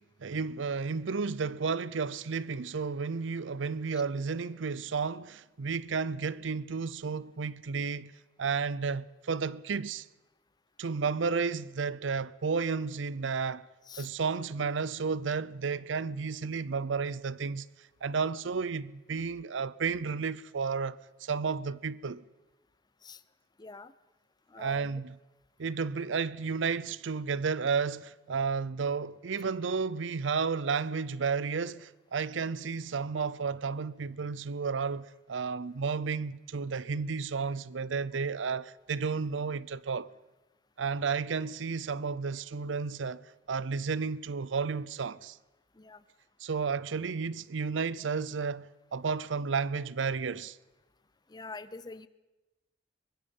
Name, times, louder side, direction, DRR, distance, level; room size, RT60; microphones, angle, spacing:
voice 1, 0.0-8.1 8.4-10.1 10.8-13.7 14.0-17.7 18.0-22.2 24.6-25.2 25.6-40.1 40.8-43.2 43.5-45.4 46.4-50.6, right 5 dB, 90° right, 0.6 m, -32 dB
voice 2, 23.6-23.9 24.5-25.0 45.8-46.0 51.3-52.1, left 3 dB, 20° left, 0.6 m, -45 dB
23.5 x 20.5 x 5.4 m
head